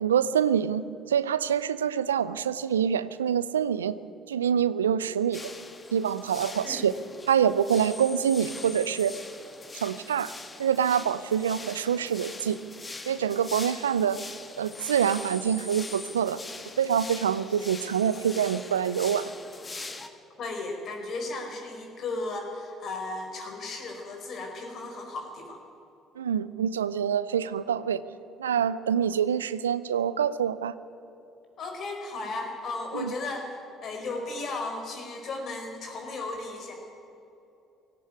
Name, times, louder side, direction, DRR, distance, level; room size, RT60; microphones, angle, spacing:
voice 1, 0.0-4.0 4.3-5.5 5.9-6.9 7.3-9.2 9.8-10.3 10.6-12.6 13.1-14.2 14.6-16.4 16.8-19.3 26.2-28.0 28.4-30.7 32.9-33.1, right 8 dB, 90° right, 16 dB, 0.5 m, -26 dB
sound 1, 5.3-20.1, left 3 dB, 30° left, 2.0 m, -42 dB
voice 2, 20.4-25.6 31.6-33.5 33.8-36.7, left 3 dB, 55° left, 3 dB, 4.8 m, -35 dB
17.5 x 16.5 x 9.2 m, 2.9 s
hypercardioid pair, 55°, 0 cm